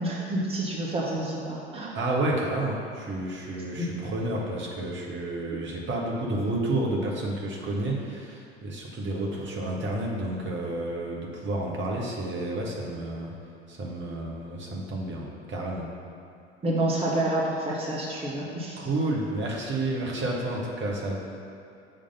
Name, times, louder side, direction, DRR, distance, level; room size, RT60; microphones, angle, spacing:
voice 1, 0.0-1.9 3.7-3.9 16.6-18.9, right 1 dB, 15° right, -4 dB, 1.3 m, -28 dB
voice 2, 1.9-13.3 13.7-15.9 18.8-21.2, right 2 dB, 35° right, -2 dB, 1.4 m, -30 dB
7.8 x 3.4 x 5.6 m, 2.7 s
figure-of-eight pair, 70°, 34 cm